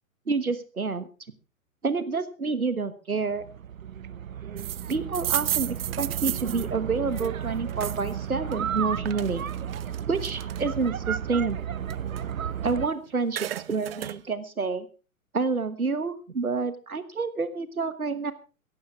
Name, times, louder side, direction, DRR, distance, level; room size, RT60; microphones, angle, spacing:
voice 1, 0.3-1.1 1.8-3.4 4.9-9.4 10.1-11.6 12.6-14.9 15.3-18.3, right 4 dB, 85° right, 13 dB, 1.3 m, -28 dB
sound 1, 3.2-12.9, right 9 dB, 70° right, 1.0 m, -33 dB
sound 2, 4.6-8.1 8.5-10.9 11.3-12.8 13.1-14.2, right 12 dB, 45° right, 0.6 m, -33 dB
17.0 x 15.0 x 3.6 m, 0.34 s
figure-of-eight pair, 110°, 42 cm